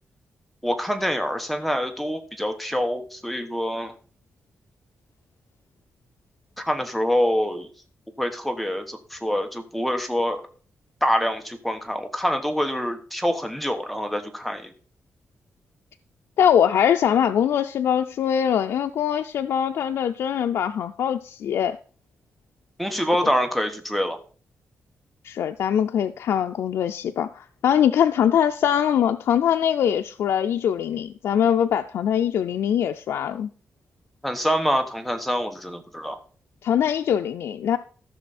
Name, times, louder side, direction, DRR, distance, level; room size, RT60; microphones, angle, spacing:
voice 1, 0.6-3.9 6.6-7.7 8.2-10.4 11.0-14.7 22.8-24.2 34.2-36.2, equal, ahead, 1.2 m, -25 dB
voice 2, 16.4-21.8 25.2-33.5 36.6-37.8, left 9 dB, 90° left, 0.4 m, -22 dB
14.0 x 6.2 x 4.2 m
wide cardioid pair, 135°, 4 cm